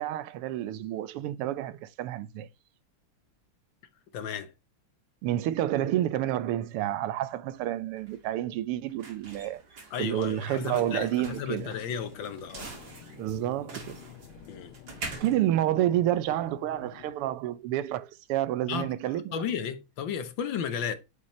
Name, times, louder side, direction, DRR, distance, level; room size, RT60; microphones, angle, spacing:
voice 1, 0.0-2.5 5.2-9.6 10.0-11.7 13.1-14.1 15.1-19.5, right 13 dB, 90° right, 1.6 m, -29 dB
voice 2, 4.1-4.5 9.9-12.7 14.5-14.7 18.7-18.9 19.3-21.0, left 7 dB, 65° left, 1.5 m, -34 dB
sound 1, 7.5-16.6, right 3 dB, 45° right, 2.7 m, -46 dB
sound 2, 10.8-17.2, left 11 dB, 80° left, 1.7 m, -50 dB
8.5 x 5.9 x 3.1 m
omnidirectional pair, 2.4 m